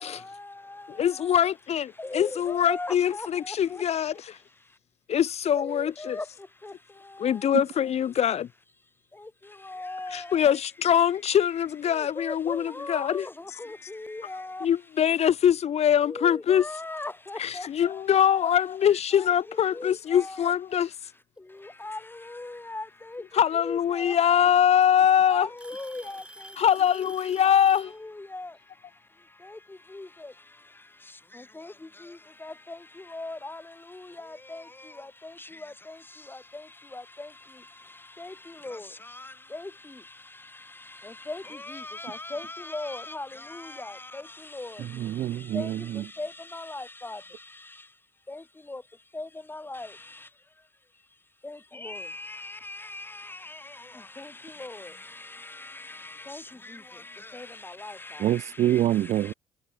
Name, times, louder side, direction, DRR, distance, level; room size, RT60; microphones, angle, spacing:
voice 1, 0.9-4.4 5.1-6.2 7.2-8.5 10.1-13.3 14.6-16.6 17.4-20.9 23.3-25.5 26.6-27.9, left 9 dB, 55° left, 1.9 m, -23 dB
voice 2, 2.1-3.3 5.6-5.9 6.1-6.2 9.7-10.2 12.5-13.2 14.1-14.6 16.1-17.1 18.4-18.5 19.8-20.2 21.8-22.0 22.4-22.8 23.6-24.1 25.3-26.0 27.5-27.6 28.3-28.5 33.1-33.4 38.6-38.8 41.3-41.4 41.7-42.4 42.7-43.3 44.6-44.7 45.5-45.7 46.2-46.3 46.5-46.8 49.2-49.3 49.7-49.9 51.8-52.1 54.6-54.7 57.8-57.9, left 2 dB, 15° left, 4.8 m, -35 dB
Alarm / Tick-tock, 14.0-14.3 15.2-15.3 16.0-16.1 17.8-17.9 19.2-19.3 20.5-20.9 22.7-22.8 24.0-24.1 24.5-24.9 25.6-28.0, right 1 dB, 10° right, 6.4 m, -47 dB
voice 3, 44.9-46.0 58.2-59.3, right 13 dB, 60° right, 0.5 m, -26 dB
supercardioid pair, 65°, 13 cm